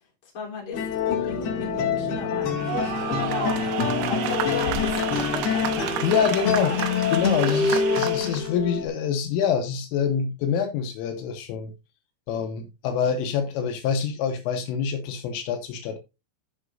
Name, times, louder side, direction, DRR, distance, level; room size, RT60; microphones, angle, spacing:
voice 1, 0.3-3.7 4.0-6.1 6.6-6.8 7.4-7.6, left 5 dB, 30° left, 3.5 m, -35 dB
sound 1, 0.7-8.9, left 6 dB, 60° left, 3.4 m, -26 dB
sound 2, 1.3-6.7, right 6 dB, 45° right, 3.0 m, -41 dB
sound 3, 2.6-8.5, right 12 dB, 80° right, 3.5 m, -30 dB
voice 2, 6.0-6.7 7.1-11.7 12.3-16.0, left 7 dB, 80° left, 3.6 m, -26 dB
13.0 x 6.0 x 2.6 m
omnidirectional pair, 5.9 m